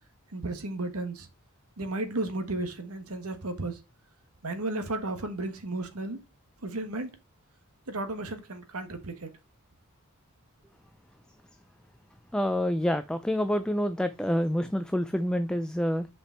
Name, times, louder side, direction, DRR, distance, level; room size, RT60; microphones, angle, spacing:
voice 1, 0.3-1.3 1.8-3.8 4.4-6.2 6.6-7.2 7.9-9.3, right 2 dB, 80° right, 1.4 m, -33 dB
voice 2, 12.3-16.1, equal, 5° left, 0.3 m, -27 dB
5.8 x 5.1 x 4.3 m
head